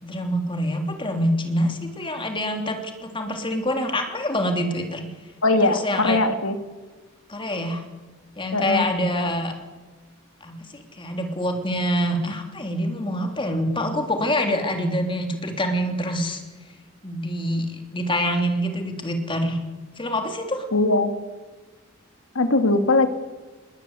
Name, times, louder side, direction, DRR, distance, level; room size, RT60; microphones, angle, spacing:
voice 1, 0.0-5.1 5.6-6.2 7.3-7.8 8.4-9.5 10.4-16.4 17.0-19.6 20.0-20.7, equal, 25° left, 4 dB, 3.2 m, -26 dB
voice 2, 5.4-6.6 8.5-8.9 20.7-21.1 22.4-23.1, left 2 dB, 80° left, 8 dB, 2.2 m, -20 dB
21.0 x 19.5 x 8.3 m, 1.2 s
head